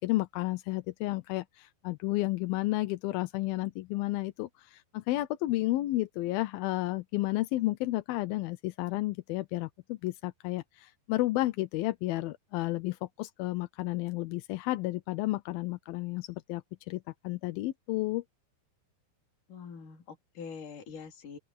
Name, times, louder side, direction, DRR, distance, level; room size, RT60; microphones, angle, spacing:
voice 1, 0.0-18.2, left 18 dB, 75° left, 2.4 m, -32 dB
voice 2, 19.5-21.4, left 6 dB, 55° left, 5.3 m, -44 dB
open air
omnidirectional pair, 4.6 m